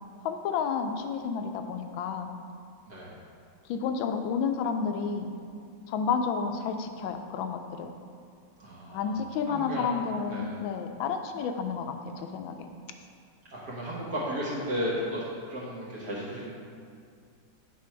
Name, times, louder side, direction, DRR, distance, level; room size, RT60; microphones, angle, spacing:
voice 1, 0.2-2.3 3.7-5.3 5.9-7.9 8.9-12.7, left 6 dB, 80° left, 7 dB, 1.3 m, -31 dB
voice 2, 8.6-9.1 9.5-9.9 10.3-10.6 13.5-16.5, equal, 60° right, -7 dB, 1.7 m, -34 dB
8.5 x 4.5 x 4.5 m, 2.2 s
omnidirectional pair, 2.1 m